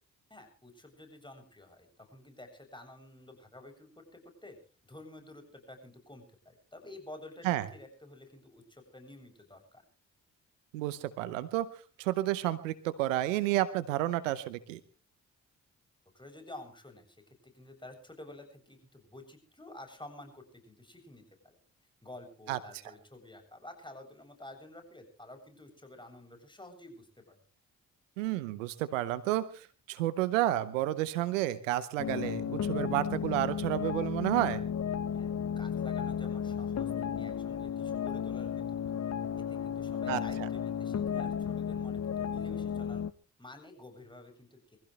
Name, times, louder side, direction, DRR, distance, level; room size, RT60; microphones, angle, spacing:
voice 1, 0.3-4.6 4.9-9.8 16.1-17.2 17.4-21.6 22.0-27.4 35.1-35.3 35.6-38.8 39.5-43.0 43.4-44.8, left 1 dB, 10° left, 4 dB, 7.7 m, -50 dB
voice 2, 10.7-11.7 12.0-14.8 22.5-22.6 28.2-34.6 40.1-40.2, right 14 dB, 90° right, 15 dB, 0.9 m, -31 dB
sound 1, 32.0-43.1, left 8 dB, 45° left, 1.0 m, -34 dB
23.5 x 15.5 x 3.3 m, 0.36 s
hypercardioid pair, 45°, 37 cm